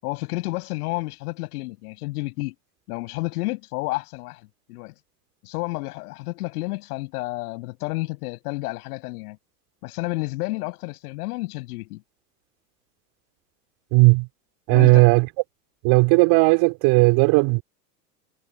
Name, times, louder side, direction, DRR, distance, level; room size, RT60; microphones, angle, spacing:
voice 1, 0.0-2.5 2.9-4.9 5.4-9.4 9.8-12.0 14.7-15.2, left 22 dB, 65° left, 7.0 m, -31 dB
voice 2, 13.9-14.3 14.7-15.3 15.8-17.6, right 27 dB, 55° right, 4.7 m, -16 dB
hypercardioid pair, 105°, 49 cm